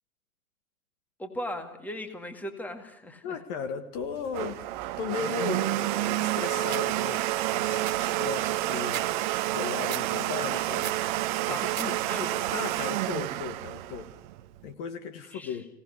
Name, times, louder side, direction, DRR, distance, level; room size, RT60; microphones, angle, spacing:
voice 1, 1.2-3.4 11.5-12.5 15.3-15.6, left 1 dB, 5° left, 7 dB, 2.0 m, -38 dB
voice 2, 3.2-4.6 5.0-9.0 9.4-11.7 12.2-14.1 14.6-15.7, left 6 dB, 35° left, 10 dB, 1.7 m, -36 dB
Domestic sounds home sounds, 4.0-14.7, right 15 dB, 35° right, 1.0 m, -29 dB
sound 1, 6.6-6.8 7.3-7.4 7.6-9.1 9.4-10.0 10.4-11.0 11.4-11.9 12.2-12.7, right 9 dB, 65° right, 2.0 m, -38 dB
25.0 x 18.0 x 9.8 m, 0.85 s
hypercardioid pair, 130°, 43 cm